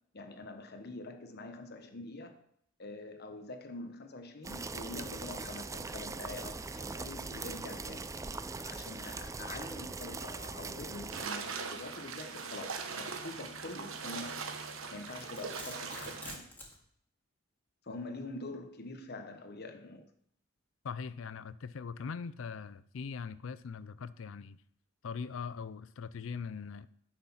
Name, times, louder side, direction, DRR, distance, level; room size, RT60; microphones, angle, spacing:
voice 1, 0.1-2.5 2.8-8.1 8.6-14.5 14.9-16.4 17.8-20.1, left 2 dB, 55° left, 7 dB, 1.1 m, -45 dB
sound 1, 4.4-11.3, right 4 dB, 15° right, 0.3 m, -41 dB
sound 2, 11.1-16.4, right 5 dB, 80° right, 1.1 m, -41 dB
Domestic sounds home sounds, 14.9-16.8, left 1 dB, 10° left, 2.1 m, -47 dB
voice 2, 20.8-24.6 25.0-26.9, left 5 dB, 70° left, 16 dB, 0.4 m, -41 dB
9.6 x 6.6 x 5.7 m, 0.68 s
head